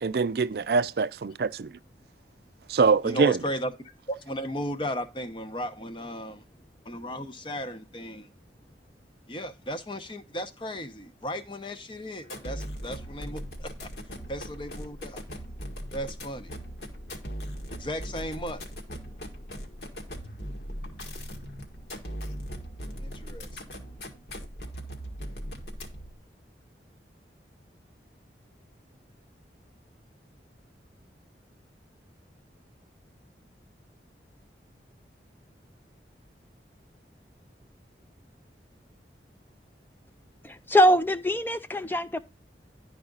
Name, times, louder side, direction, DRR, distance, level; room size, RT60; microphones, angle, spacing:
voice 1, 0.0-1.7 2.7-3.4, right 4 dB, 60° right, 0.4 m, -24 dB
voice 2, 3.0-3.7 4.1-6.4 6.8-8.3 9.3-15.2 15.9-16.5 17.7-18.6 23.0-24.0, equal, 30° left, 0.9 m, -35 dB
sound 1, 12.2-26.2, equal, 65° left, 1.7 m, -39 dB
voice 3, 40.4-42.2, equal, 10° left, 0.5 m, -23 dB
11.0 x 4.9 x 3.9 m
head